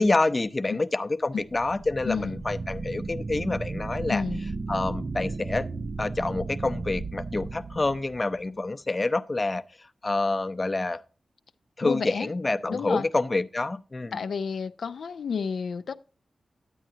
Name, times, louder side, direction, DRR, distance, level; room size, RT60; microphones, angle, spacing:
voice 1, 0.0-4.2 4.7-5.7 6.0-9.6 10.0-11.0 11.8-14.2, left 2 dB, 35° left, 0.6 m, -27 dB
sound 1, 1.4-8.5, right 3 dB, 45° right, 0.4 m, -35 dB
voice 2, 2.0-2.4 4.1-4.4 11.8-12.3 12.7-13.1 14.1-15.9, left 6 dB, 80° left, 0.4 m, -31 dB
10.0 x 8.7 x 2.8 m
cardioid pair, 65°, 0 cm